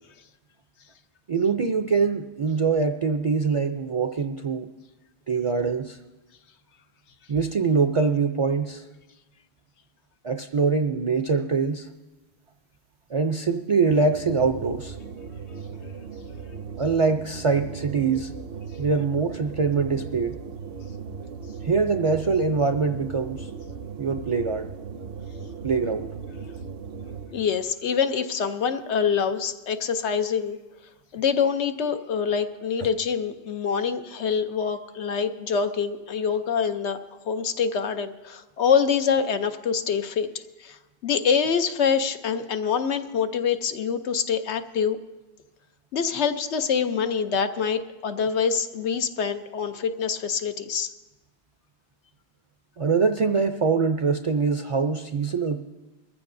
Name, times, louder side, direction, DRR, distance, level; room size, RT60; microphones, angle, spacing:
voice 1, 1.3-4.7 5.3-6.0 7.3-8.9 10.2-11.9 13.1-15.0 16.8-18.3 18.8-20.4 21.6-23.5 24.0-24.7 25.6-26.1 52.8-55.6, right 4 dB, 45° right, 7 dB, 0.4 m, -23 dB
sound 1, 13.9-27.5, right 5 dB, 65° right, 0.8 m, -38 dB
voice 2, 27.3-30.6 31.1-37.0 37.2-40.3 40.6-40.8 41.0-45.0 45.9-50.9, left 6 dB, 90° left, 9 dB, 1.1 m, -25 dB
22.5 x 14.5 x 2.6 m, 1.1 s
omnidirectional pair, 1.1 m